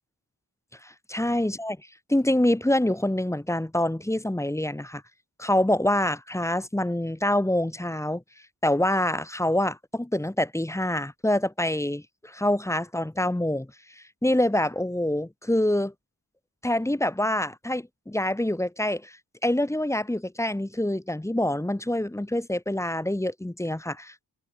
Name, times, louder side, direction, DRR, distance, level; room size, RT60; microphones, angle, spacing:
voice 1, 0.8-1.8 2.1-5.0 5.4-8.2 8.6-13.7 14.0-15.9 16.6-19.2 19.4-24.2, left 1 dB, 5° left, 0.8 m, -26 dB
cardioid pair, 55°, 42 cm